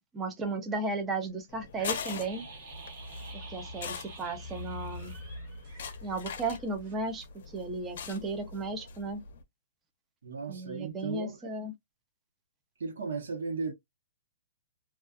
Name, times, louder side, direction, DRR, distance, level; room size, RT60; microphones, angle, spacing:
voice 1, 0.1-2.4 3.3-5.1 6.0-9.2 10.5-11.7, right 3 dB, 10° right, 0.4 m, -35 dB
sound 1, 1.5-9.4, left 5 dB, 55° left, 0.6 m, -42 dB
sound 2, 1.8-6.6 6.8-6.9, right 3 dB, 35° right, 1.0 m, -49 dB
voice 2, 10.2-11.5 12.8-13.7, right 4 dB, 85° right, 0.9 m, -36 dB
2.3 x 2.3 x 2.4 m
hypercardioid pair, 165°, 0 cm